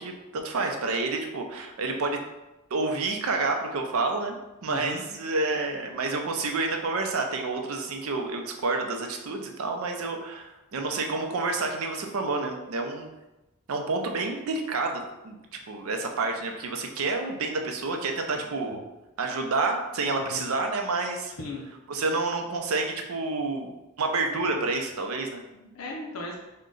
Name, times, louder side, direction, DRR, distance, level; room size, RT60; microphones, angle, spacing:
voice 1, 0.0-2.2 2.7-13.1 13.7-15.4 15.7-18.8 19.2-21.3 21.9-25.4, right 3 dB, 70° right, 4 dB, 0.5 m, -29 dB
voice 2, 4.7-5.0 18.3-18.4 20.2-20.4 21.4-21.7 25.5-26.4, left 2 dB, 70° left, -1 dB, 0.6 m, -37 dB
3.8 x 2.2 x 3.7 m, 1.0 s
head